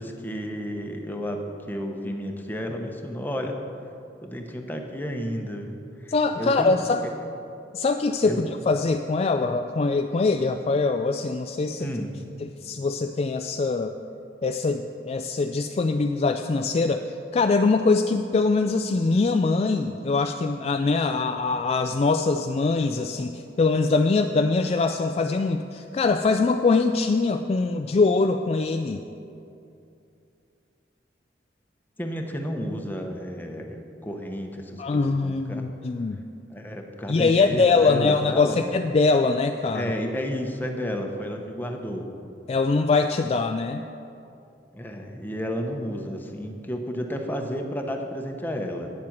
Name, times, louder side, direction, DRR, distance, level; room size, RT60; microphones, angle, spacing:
voice 1, 0.0-3.6 4.2-6.7 7.0-7.1 8.2-8.4 11.8-12.1 32.0-35.7 36.5-38.6 39.7-42.1 44.7-48.9, equal, 10° left, 3 dB, 0.9 m, -32 dB
voice 2, 6.1-7.0 7.7-11.9 12.4-14.0 14.4-29.0 34.8-36.2 37.1-40.0 42.5-43.8, left 3 dB, 35° left, 6 dB, 0.3 m, -23 dB
9.4 x 7.5 x 7.3 m, 2.6 s
head